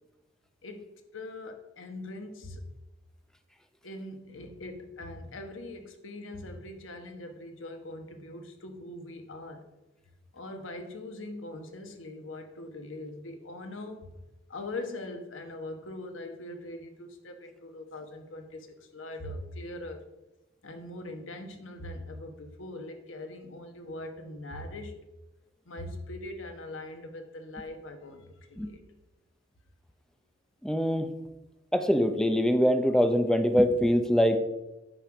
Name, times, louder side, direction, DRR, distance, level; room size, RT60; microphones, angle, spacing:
voice 1, 0.6-2.6 3.8-9.6 10.3-14.1 14.5-20.0 20.6-25.0 25.6-28.8, left 2 dB, 85° left, 6 dB, 1.2 m, -41 dB
voice 2, 30.6-31.1 31.7-34.4, equal, 5° left, 8 dB, 0.6 m, -23 dB
9.2 x 6.2 x 4.9 m, 1.0 s
head